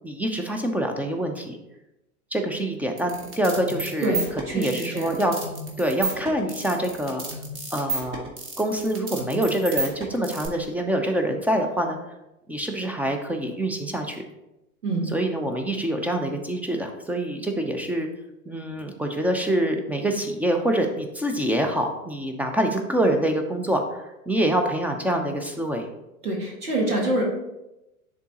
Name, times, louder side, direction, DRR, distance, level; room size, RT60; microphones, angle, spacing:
voice 1, 0.0-1.6 2.3-5.4 5.8-7.2 7.7-8.3 8.6-12.0 12.5-14.2 15.1-18.1 18.5-25.9, right 1 dB, 5° right, 4 dB, 0.6 m, -25 dB
sound 1, 3.0-10.5, right 3 dB, 25° right, 1.6 m, -32 dB
voice 2, 4.0-5.1 14.8-15.1 26.2-27.2, right 1 dB, 85° right, -1 dB, 2.0 m, -26 dB
10.5 x 3.8 x 2.9 m, 0.93 s
hypercardioid pair, 95°, 44 cm